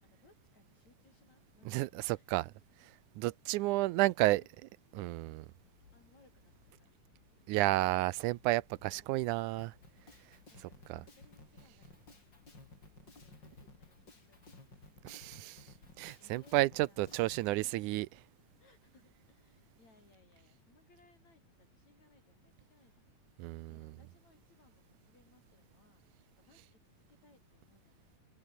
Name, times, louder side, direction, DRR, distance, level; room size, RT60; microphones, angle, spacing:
voice 1, 0.0-2.3 3.5-4.0 4.4-4.5 4.9-5.3 5.6-7.1 10.5-14.9 15.4-17.7 18.6-23.1 23.7-26.0 26.4-28.2, left 3 dB, 55° left, 8.8 m, -68 dB
voice 2, 1.7-2.4 3.2-4.4 5.0-5.5 7.5-9.7 10.9-11.0 15.0-15.6 16.0-18.1 23.4-23.8, right 18 dB, 80° right, 1.9 m, -31 dB
sound 1, 5.1-15.0, left 7 dB, 75° left, 5.0 m, -68 dB
Drum kit, 9.6-17.5, left 3 dB, 30° left, 6.2 m, -57 dB
omnidirectional pair, 3.9 m